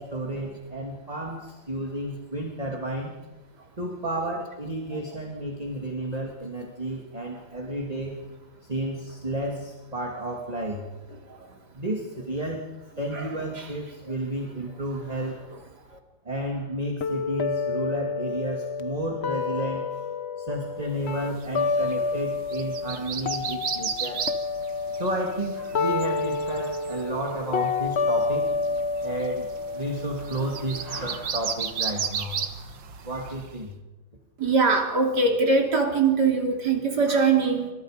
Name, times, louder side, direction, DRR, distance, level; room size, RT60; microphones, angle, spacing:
voice 1, 0.0-3.1 3.8-8.2 8.6-10.9 11.7-12.6 13.0-15.5 16.2-20.0 20.4-24.2 25.0-28.5 29.0-29.5 29.7-32.4 33.0-33.7 34.4-34.6, right 1 dB, 20° right, 0 dB, 2.7 m, -32 dB
sound 1, 17.0-23.0 23.2-31.0, left 4 dB, 45° left, 1.0 m, -29 dB
sound 2, 21.1-33.6, right 7 dB, 75° right, 2.2 m, -35 dB
voice 2, 34.4-37.7, right 4 dB, 60° right, 3 dB, 3.7 m, -22 dB
27.0 x 25.5 x 5.2 m, 1.1 s
omnidirectional pair, 2.1 m